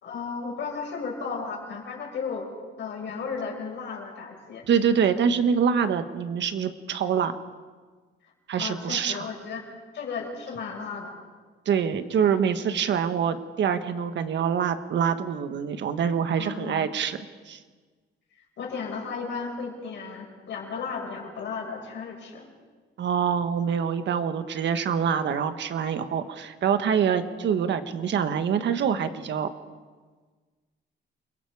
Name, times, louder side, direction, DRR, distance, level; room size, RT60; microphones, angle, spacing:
voice 1, 0.0-2.5 2.8-4.7 8.2-8.3 8.6-9.6 9.9-11.1 16.4-16.9 18.6-22.5, left 5 dB, 65° left, 0 dB, 6.1 m, -34 dB
voice 2, 4.7-7.3 8.5-9.2 11.6-17.2 17.5-17.6 23.0-29.5, right 7 dB, 65° right, 9 dB, 1.5 m, -25 dB
28.5 x 22.0 x 4.9 m, 1.4 s
cardioid pair, 135°, 20 cm